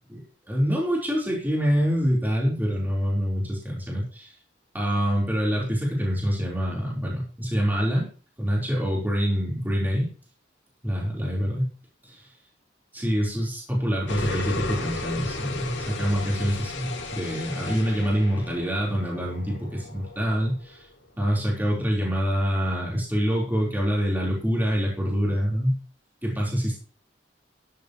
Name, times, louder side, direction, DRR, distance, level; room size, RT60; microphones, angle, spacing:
voice 1, 0.5-4.3 4.7-8.1 8.4-10.1 10.8-11.7 12.0-12.3 12.9-20.8 21.2-25.8 26.2-26.8, equal, 10° right, -4 dB, 4.6 m, -25 dB
sound 1, 14.1-21.0, left 3 dB, 85° left, 2.5 m, -35 dB
13.0 x 11.0 x 3.3 m, 0.38 s
head